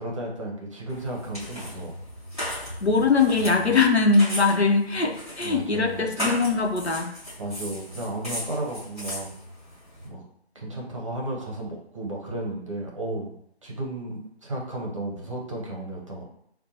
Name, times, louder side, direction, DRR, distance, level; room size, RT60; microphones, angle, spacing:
voice 1, 0.0-2.0 5.4-6.1 7.4-9.4 10.0-10.2 10.5-13.3 13.6-16.2, right 1 dB, 30° right, -2 dB, 0.8 m, -33 dB
sound 1, 0.9-10.1, equal, ahead, 1.3 m, -36 dB
voice 2, 2.8-7.1, left 4 dB, 75° left, 3 dB, 0.8 m, -21 dB
5.4 x 2.2 x 2.7 m, 0.70 s
figure-of-eight pair, 155°, 33 cm